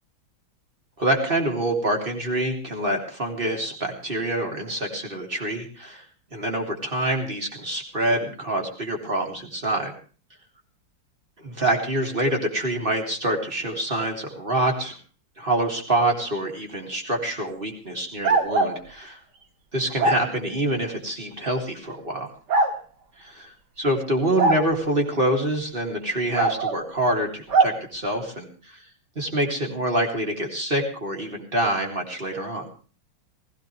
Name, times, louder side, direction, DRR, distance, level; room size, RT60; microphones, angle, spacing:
voice 1, 1.0-6.0 6.3-9.9 11.4-15.0 15.4-19.2 19.7-22.3 23.2-23.5 23.8-28.8 29.2-32.7, right 1 dB, 25° right, 2 dB, 3.6 m, -26 dB
sound 1, 18.2-18.8 20.0-20.2 21.5-21.6 22.5-22.7 24.4-24.6 26.4-26.8 27.5-27.7, right 3 dB, 55° right, 2.2 m, -20 dB
20.5 x 16.5 x 3.4 m, 0.38 s
omnidirectional pair, 2.3 m